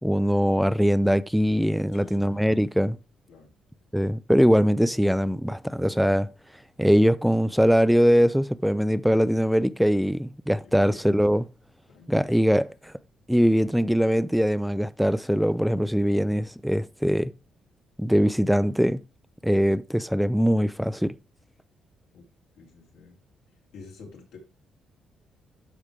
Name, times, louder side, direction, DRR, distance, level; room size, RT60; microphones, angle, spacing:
voice 1, 0.0-3.0 3.9-6.3 6.8-11.5 12.1-12.7 13.3-17.3 18.0-19.0 19.4-21.1, equal, ahead, 0.3 m, -22 dB
voice 2, 1.9-2.4 3.3-3.5 10.6-11.0 11.9-12.7 22.1-22.2 22.6-23.2 23.7-24.4, left 4 dB, 90° left, 2.7 m, -48 dB
12.5 x 4.9 x 3.4 m
cardioid pair, 90°, 0 cm